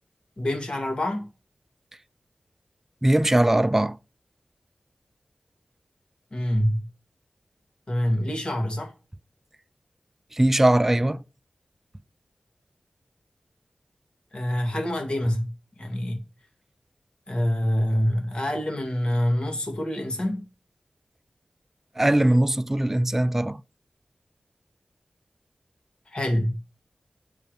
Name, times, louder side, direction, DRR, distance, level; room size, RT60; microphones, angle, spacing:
voice 1, 0.4-1.3 6.3-6.9 7.9-8.9 14.3-15.5 15.8-16.2 17.3-20.4 26.1-26.6, equal, 45° left, 2.3 m, -26 dB
voice 2, 3.0-4.0 10.3-11.2 22.0-23.6, right 1 dB, 15° right, 0.3 m, -20 dB
8.6 x 4.7 x 6.6 m
wide cardioid pair, 95°, 2 cm